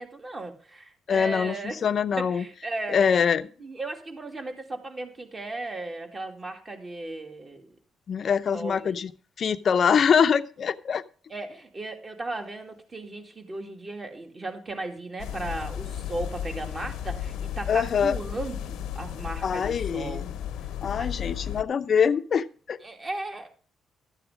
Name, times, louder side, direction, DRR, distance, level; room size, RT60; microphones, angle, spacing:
voice 1, 0.0-1.8 2.2-3.1 3.6-7.7 8.5-9.0 11.3-20.3 21.0-21.1 22.8-23.5, right 2 dB, 30° right, 4 dB, 2.5 m, -36 dB
voice 2, 1.1-1.5 1.8-2.4 2.9-3.4 8.1-9.1 9.4-11.0 17.7-18.2 19.4-20.3 20.8-22.8, left 7 dB, 50° left, 12 dB, 0.7 m, -24 dB
sound 1, 15.2-21.6, left 10 dB, 85° left, 0.9 m, -34 dB
12.5 x 8.3 x 5.0 m, 0.40 s
cardioid pair, 90°, 0 cm